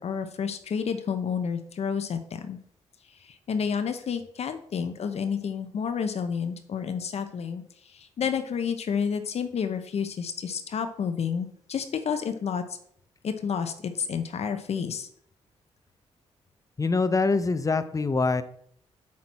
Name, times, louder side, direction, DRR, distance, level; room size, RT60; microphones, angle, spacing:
voice 1, 0.0-2.6 3.2-7.6 7.9-12.6 13.2-15.1, left 6 dB, 60° left, 8 dB, 0.8 m, -30 dB
voice 2, 16.8-18.4, left 3 dB, 30° left, 12 dB, 0.7 m, -24 dB
7.4 x 6.2 x 4.2 m, 0.65 s
cardioid pair, 75°, 12 cm